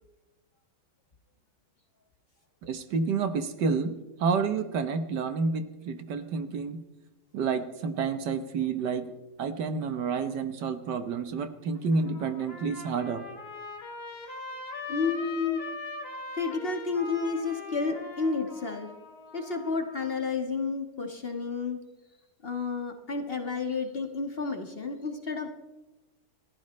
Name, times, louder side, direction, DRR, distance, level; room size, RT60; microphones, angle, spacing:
voice 1, 2.6-6.8 7.3-9.1 9.4-13.2, right 5 dB, 75° right, 9 dB, 1.7 m, -29 dB
Trumpet, 11.7-20.2, left 3 dB, 65° left, 3.3 m, -41 dB
voice 2, 14.9-15.6 16.4-18.9 19.3-21.8 22.4-25.5, left 4 dB, 35° left, 4 dB, 1.6 m, -31 dB
29.5 x 14.0 x 3.2 m, 1.1 s
omnidirectional pair, 1.9 m